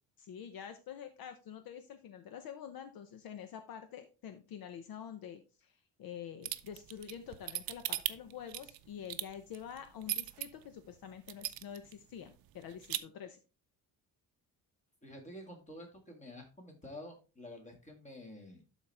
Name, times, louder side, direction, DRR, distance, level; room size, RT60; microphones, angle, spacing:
voice 1, 0.2-13.4, left 8 dB, 60° left, 9 dB, 0.8 m, -47 dB
sound 1, 6.4-10.5 10.9-11.0 11.3-11.9 12.2-12.3 12.6-13.0, right 14 dB, 60° right, 0.6 m, -37 dB
voice 2, 15.0-18.6, left 1 dB, 15° left, 3 dB, 1.9 m, -49 dB
12.0 x 4.2 x 3.3 m, 0.31 s
cardioid pair, 170°, 41 cm